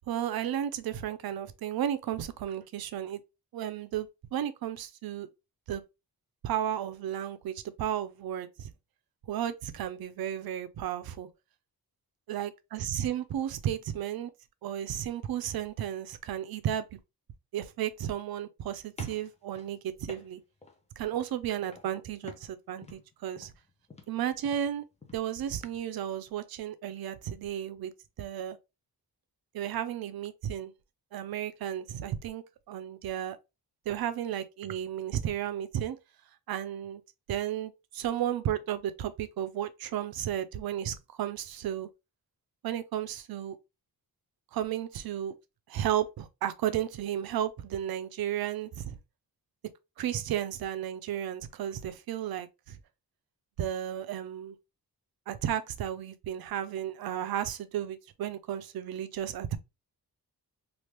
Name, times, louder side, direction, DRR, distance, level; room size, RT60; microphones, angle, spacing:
voice 1, 0.1-3.2 3.5-5.3 5.7-5.8 6.4-8.7 9.3-11.3 12.3-14.3 14.6-16.9 17.5-20.4 21.0-23.5 24.1-24.8 25.1-27.9 28.2-28.6 29.5-30.7 31.1-33.4 33.9-36.0 36.5-37.0 37.3-41.9 42.6-43.6 44.5-45.4 45.7-49.0 50.0-52.8 53.6-54.6 55.3-59.6, right 10 dB, 75° right, 0.5 m, -33 dB
sound 1, 19.0-20.8 21.1-21.4 21.7-22.0 22.2-25.8, left 3 dB, 20° left, 0.5 m, -50 dB
3.3 x 2.4 x 2.9 m
wide cardioid pair, 165°, 37 cm